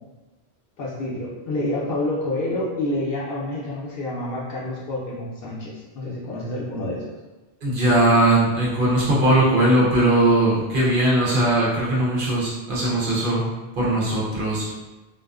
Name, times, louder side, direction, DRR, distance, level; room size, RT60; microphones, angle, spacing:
voice 1, 0.8-7.1, left 1 dB, 65° left, -4 dB, 0.7 m, -28 dB
voice 2, 7.6-13.4 13.8-14.7, right 1 dB, 55° right, -6 dB, 0.8 m, -19 dB
2.5 x 2.3 x 2.3 m, 1.1 s
omnidirectional pair, 1.1 m